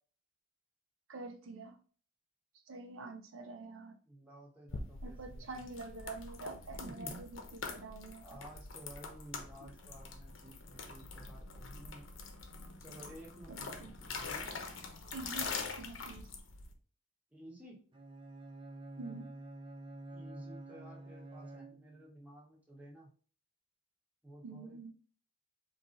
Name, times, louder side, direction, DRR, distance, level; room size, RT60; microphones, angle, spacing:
voice 1, 1.1-1.8 2.7-4.0 5.0-8.2 9.6-9.7 13.5-13.9 15.1-16.3 19.0-19.3 24.4-24.9, right 3 dB, 85° right, 0.6 m, -46 dB
voice 2, 4.1-5.6 6.8-7.2 7.6-7.9 8.2-12.1 12.8-14.6 17.3-17.8 20.1-23.1 24.2-24.9, right 1 dB, 5° right, 1.4 m, -53 dB
sound 1, 4.7-16.7, left 4 dB, 75° left, 0.9 m, -44 dB
Bowed string instrument, 17.9-22.1, right 2 dB, 25° right, 0.5 m, -48 dB
4.6 x 2.8 x 3.8 m
head